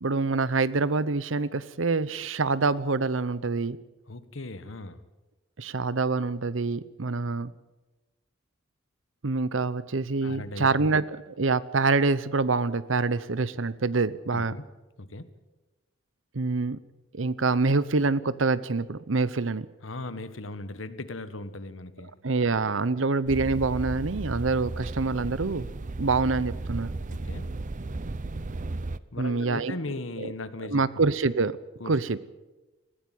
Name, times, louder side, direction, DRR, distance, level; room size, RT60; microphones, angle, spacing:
voice 1, 0.0-3.8 5.6-7.5 9.2-14.5 16.3-16.8 17.1-19.7 22.2-25.7 26.0-27.0 29.2-29.7 30.7-31.6 31.8-32.2, right 3 dB, 80° right, 18 dB, 0.9 m, -26 dB
voice 2, 4.1-5.0 10.2-10.7 14.3-14.7 15.0-15.3 19.8-22.1 27.1-27.5 29.1-31.0 31.8-32.0, left 2 dB, 80° left, 13 dB, 1.5 m, -38 dB
sound 1, 23.3-29.0, right 2 dB, 40° right, 0.7 m, -34 dB
20.0 x 15.5 x 9.4 m, 1.1 s
head